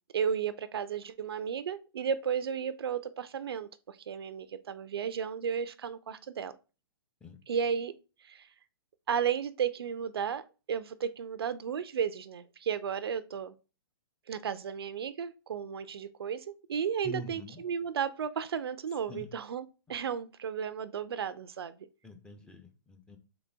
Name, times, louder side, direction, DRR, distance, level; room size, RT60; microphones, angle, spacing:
voice 1, 0.1-6.5 7.5-7.9 8.2-8.5 9.1-10.4 10.7-13.5 14.3-21.9, right 7 dB, 75° right, 0.4 m, -34 dB
voice 2, 17.0-17.6 19.1-19.3 22.0-23.2, left 1 dB, 5° left, 0.6 m, -44 dB
3.9 x 3.7 x 3.4 m
hypercardioid pair, 125°, 13 cm